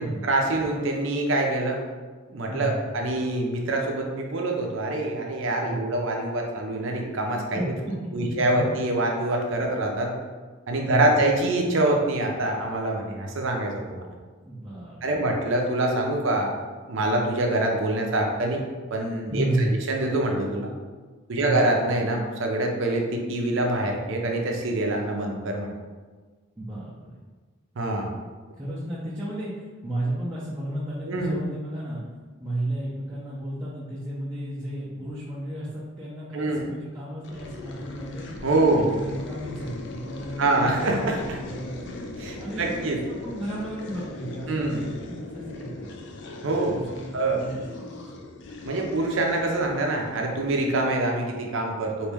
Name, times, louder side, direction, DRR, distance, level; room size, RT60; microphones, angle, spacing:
voice 1, 0.2-1.8 2.3-7.6 8.1-10.1 10.7-14.0 15.0-16.5 16.8-18.6 18.9-20.7 21.3-25.7 27.8-28.1 31.1-31.4 36.3-36.7 38.4-38.9 40.4-41.4 42.2-43.0 44.5-44.8 46.4-46.8 47.1-47.4 48.6-52.1, right 2 dB, 70° right, 1 dB, 0.6 m, -25 dB
voice 2, 2.5-2.9 5.6-5.9 7.5-7.6 8.2-8.3 10.8-11.2 14.4-15.3 19.3-19.7 21.4-21.6 26.6-27.2 28.6-32.0 32.4-38.3 38.7-41.9 42.4-45.9 46.7-48.0, right 1 dB, 15° right, -9 dB, 0.5 m, -33 dB
sound 1, 37.2-51.1, left 3 dB, 60° left, 0.3 m, -39 dB
3.0 x 2.6 x 3.4 m, 1.4 s
head